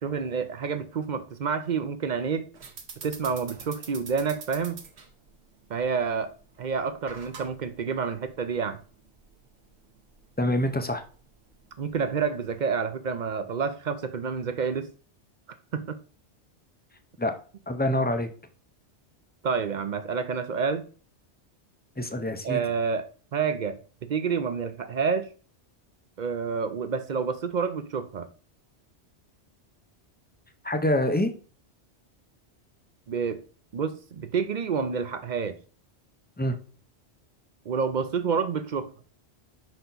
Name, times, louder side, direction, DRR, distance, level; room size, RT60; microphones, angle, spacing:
voice 1, 0.0-2.5 3.0-4.8 5.7-6.3 6.6-8.8 11.8-14.9 15.7-16.0 19.4-20.9 22.4-23.0 23.3-25.3 26.2-28.3 33.1-33.4 33.7-35.6 37.7-38.9, right 5 dB, 50° right, 0.6 m, -28 dB
sound 1, 2.5-12.6, right 5 dB, 70° right, 1.2 m, -47 dB
voice 2, 10.4-11.0 17.2-17.3 17.7-18.3 22.0-22.6 30.6-31.3 36.4-36.5, left 1 dB, 15° left, 0.4 m, -25 dB
5.6 x 4.3 x 3.9 m
omnidirectional pair, 1.2 m